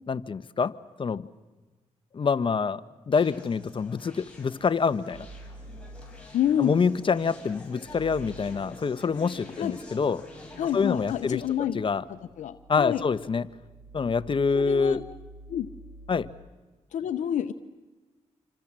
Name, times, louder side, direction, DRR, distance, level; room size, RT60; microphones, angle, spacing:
voice 1, 0.1-1.3 2.1-5.3 6.6-10.2 10.7-11.4 11.7-12.0 12.7-13.5 13.9-15.0 16.1-16.3, left 5 dB, 45° left, 13 dB, 1.0 m, -26 dB
Conversation, 3.1-11.5, left 1 dB, 10° left, 8.0 m, -47 dB
sound 1, 5.1-16.3, right 2 dB, 45° right, 6.8 m, -49 dB
voice 2, 6.3-6.8 9.6-9.8 10.6-11.8 12.1-13.0 14.5-15.0 15.5-15.7 16.9-17.5, left 10 dB, 85° left, 9 dB, 0.8 m, -28 dB
27.0 x 25.5 x 7.5 m, 1.2 s
cardioid pair, 75°, 12 cm